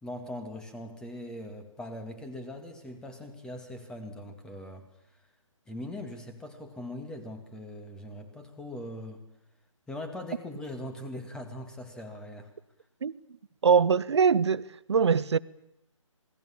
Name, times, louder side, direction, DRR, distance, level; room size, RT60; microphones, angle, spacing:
voice 1, 0.0-4.9 5.7-9.2 9.9-12.5, left 1 dB, 5° left, 2.1 m, -41 dB
voice 2, 13.6-15.4, right 6 dB, 55° right, 1.0 m, -23 dB
27.5 x 20.5 x 7.3 m
figure-of-eight pair, 155°, 17 cm